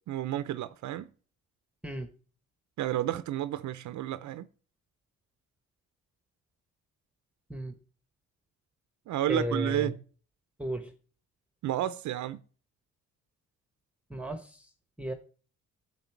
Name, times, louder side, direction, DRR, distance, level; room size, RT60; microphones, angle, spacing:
voice 1, 0.1-1.1 2.8-4.5 9.1-10.0 11.6-12.4, right 13 dB, 70° right, 0.6 m, -31 dB
voice 2, 9.3-9.9 10.6-10.9 14.1-14.6 15.0-15.1, right 1 dB, 5° right, 1.0 m, -33 dB
9.3 x 7.7 x 4.5 m
cardioid pair, 90°, 30 cm